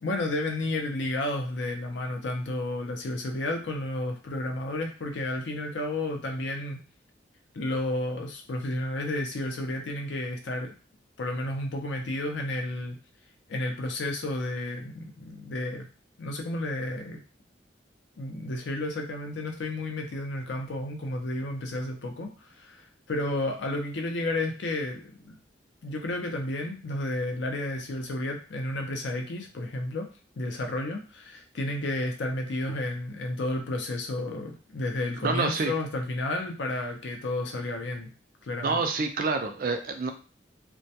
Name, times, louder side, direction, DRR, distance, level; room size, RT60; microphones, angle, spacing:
voice 1, 0.0-6.8 7.5-10.7 11.2-13.0 13.5-15.9 16.2-17.2 18.2-25.4 25.8-30.1 30.4-38.1 38.4-38.8, left 1 dB, 75° left, 3 dB, 0.5 m, -32 dB
voice 2, 35.2-35.7 38.6-40.1, right 4 dB, 50° right, 5 dB, 0.3 m, -27 dB
2.2 x 2.1 x 2.7 m, 0.37 s
head